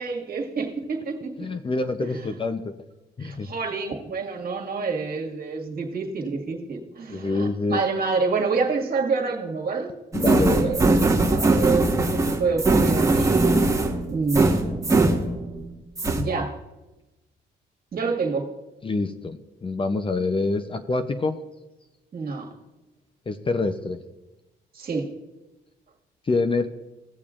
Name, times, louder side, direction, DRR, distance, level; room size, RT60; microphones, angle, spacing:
voice 1, 0.0-1.5 2.0-2.3 3.2-9.9 10.3-11.0 11.3-13.6 14.1-14.8 16.1-16.6 17.9-18.5 22.1-22.5 24.7-25.1, right 4 dB, 50° right, 1 dB, 1.9 m, -28 dB
voice 2, 1.4-2.8 3.2-3.5 7.1-7.8 10.1-10.7 18.8-21.4 23.3-24.0 26.2-26.7, left 3 dB, 25° left, 8 dB, 0.6 m, -26 dB
sound 1, 10.1-15.7 16.0-16.2, right 2 dB, 15° right, 1.4 m, -21 dB
17.0 x 6.8 x 2.5 m, 1.0 s
cardioid pair, 90°, 20 cm